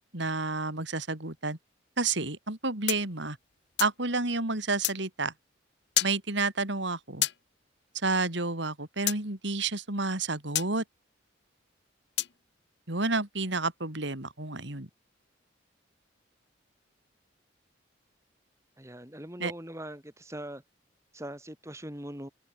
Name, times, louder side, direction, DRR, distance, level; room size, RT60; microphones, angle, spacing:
voice 1, 0.1-1.6 2.0-3.4 3.8-5.3 6.0-7.3 8.0-10.8 12.9-14.9 19.4-19.5, right 3 dB, 65° right, 3.6 m, -30 dB
sound 1, 2.9-4.0 4.8-5.0 6.0-6.2 7.2-7.4 9.1-9.2 10.6-10.7 12.2-12.4, left 14 dB, 60° left, 1.2 m, -29 dB
voice 2, 18.8-20.6 21.1-22.3, right 1 dB, 15° right, 5.5 m, -41 dB
head